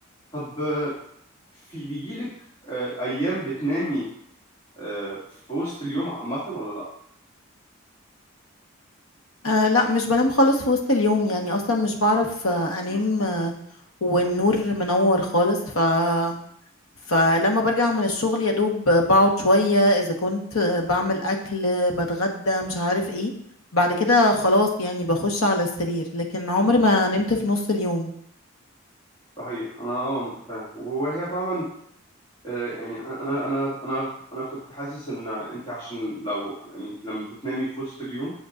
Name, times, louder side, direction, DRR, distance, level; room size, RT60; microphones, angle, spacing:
voice 1, 0.3-0.9 1.7-2.3 2.6-4.0 4.8-5.2 5.5-6.8 12.9-13.0 29.4-31.7 32.4-38.3, right 1 dB, 25° left, -9 dB, 2.4 m, -30 dB
voice 2, 9.4-13.5 14.0-16.4 17.1-23.3 23.7-28.1, left 1 dB, 85° left, 1 dB, 1.3 m, -21 dB
8.9 x 7.1 x 2.6 m, 0.67 s
head